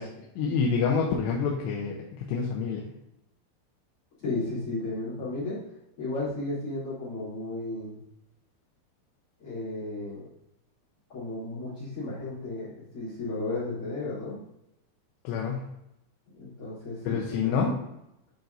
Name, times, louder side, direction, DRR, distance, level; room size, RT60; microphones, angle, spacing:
voice 1, 0.0-2.9 15.2-15.7 17.0-17.8, left 5 dB, 80° left, -1 dB, 2.8 m, -28 dB
voice 2, 4.2-5.6 6.0-8.0 9.4-10.2 11.1-14.4 16.4-17.5, left 2 dB, 40° left, -9 dB, 2.9 m, -34 dB
9.5 x 4.5 x 2.6 m, 0.84 s
omnidirectional pair, 5.0 m